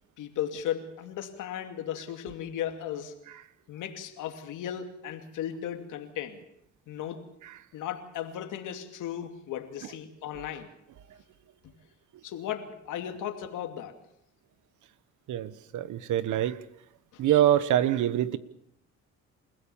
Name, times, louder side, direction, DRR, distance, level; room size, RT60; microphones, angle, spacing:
voice 1, 0.2-3.2 3.7-6.4 6.9-7.2 7.7-10.7 12.2-14.0 17.1-17.2, left 10 dB, 90° left, 6 dB, 2.6 m, -36 dB
voice 2, 15.3-16.6 17.2-18.4, right 11 dB, 75° right, 15 dB, 1.2 m, -25 dB
28.5 x 16.0 x 7.2 m, 0.77 s
cardioid pair, 90°, 30 cm